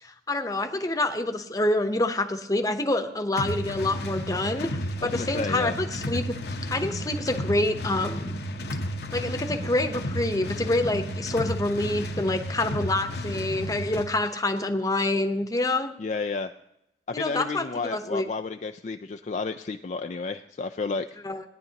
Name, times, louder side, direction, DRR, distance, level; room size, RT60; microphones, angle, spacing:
voice 1, 0.0-4.7 5.0-6.4 6.7-8.4 9.1-15.9 17.1-18.3 21.2-21.4, left 2 dB, 20° left, 7 dB, 0.9 m, -27 dB
sound 1, 3.4-14.1, equal, 65° left, 0.9 m, -32 dB
voice 2, 5.0-5.7 16.0-16.5 17.1-21.1, left 4 dB, 40° left, 7 dB, 0.4 m, -31 dB
18.5 x 10.5 x 2.9 m, 0.83 s
head